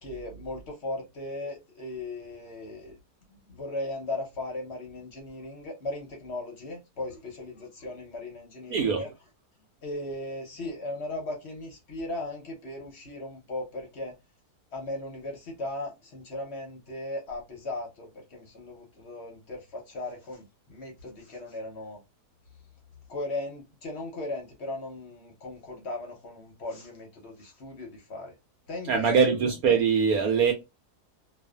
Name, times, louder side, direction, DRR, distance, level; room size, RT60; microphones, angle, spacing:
voice 1, 0.0-3.0 3.5-9.1 9.8-14.1 14.7-22.0 23.1-28.3 28.7-29.2, left 2 dB, 50° left, 0.9 m, -37 dB
voice 2, 8.7-9.0 28.9-30.5, right 6 dB, 70° right, 1.0 m, -22 dB
2.6 x 2.4 x 2.3 m
omnidirectional pair, 1.7 m